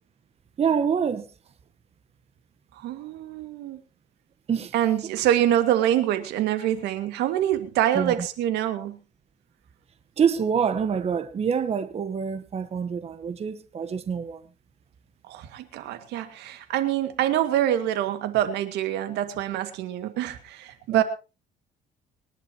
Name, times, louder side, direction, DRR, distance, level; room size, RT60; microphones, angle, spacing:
voice 1, 0.6-1.3 4.5-4.7 7.9-8.3 10.2-14.4 20.9-21.0, right 7 dB, 35° right, 1.1 m, -26 dB
voice 2, 2.7-3.8 4.7-9.0 15.3-21.0, right 12 dB, 85° right, 2.0 m, -25 dB
25.0 x 11.0 x 2.9 m
cardioid pair, 110°, 17 cm